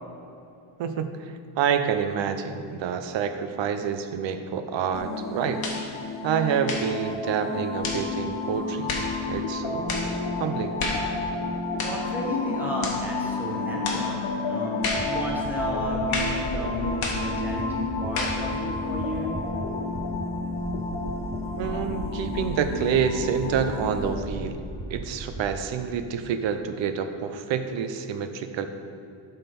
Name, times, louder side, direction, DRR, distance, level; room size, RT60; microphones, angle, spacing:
voice 1, 0.8-5.7 6.2-8.9 9.3-9.9 10.4-10.8 21.6-24.6 24.9-28.9, right 7 dB, 65° right, 9 dB, 0.7 m, -28 dB
sound 1, 4.9-24.1, left 3 dB, 70° left, 1.3 m, -31 dB
sound 2, 5.6-5.9 6.6-6.9 7.8-8.1 8.9-9.1 9.9-10.1 10.8-11.1 11.8-12.0 12.8-13.0 13.8-14.1 14.8-15.1 16.1-16.4 17.0-17.3 18.2-18.4, left 3 dB, 45° left, 1.3 m, -30 dB
voice 2, 11.8-14.8 15.0-19.3, equal, 5° right, -4 dB, 1.3 m, -32 dB
sound 3, 14.9-19.6 19.9-20.2 20.5-23.1 23.4-25.4, right 1 dB, 20° right, 0.9 m, -36 dB
12.0 x 4.0 x 5.3 m, 2.7 s
cardioid pair, 170°, 48 cm